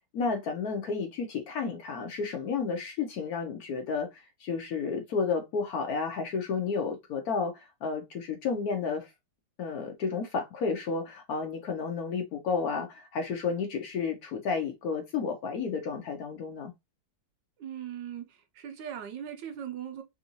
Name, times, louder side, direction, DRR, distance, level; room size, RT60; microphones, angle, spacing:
voice 1, 0.1-4.1 4.4-9.1 9.6-16.7, left 5 dB, 70° left, 0.9 m, -31 dB
voice 2, 17.6-20.0, right 9 dB, 75° right, 1.4 m, -39 dB
3.5 x 2.6 x 2.7 m
omnidirectional pair, 2.0 m